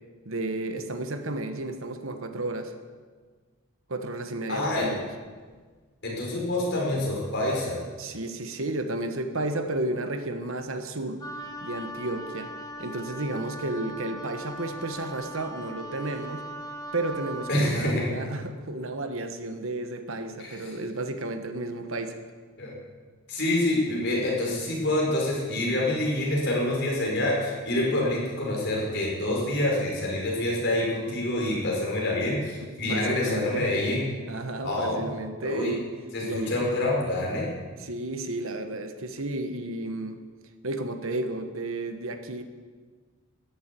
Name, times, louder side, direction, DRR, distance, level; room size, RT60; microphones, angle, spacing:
voice 1, 0.2-2.7 3.9-5.1 8.0-11.2 11.6-12.5 12.8-16.4 16.9-22.2 32.9-33.7 34.3-35.8 36.2-36.5 37.8-40.2 40.6-42.4, right 2 dB, 65° right, 7 dB, 1.3 m, -32 dB
voice 2, 4.5-4.9 6.0-7.8 17.5-18.1 20.4-20.7 22.6-22.7 23.3-34.0 34.6-35.0 35.4-35.7 36.1-37.5, left 1 dB, 50° left, -3 dB, 4.9 m, -27 dB
Wind instrument woodwind instrument, 11.2-17.6, right 1 dB, 15° left, 1.1 m, -39 dB
13.5 x 10.5 x 8.4 m, 1.5 s
head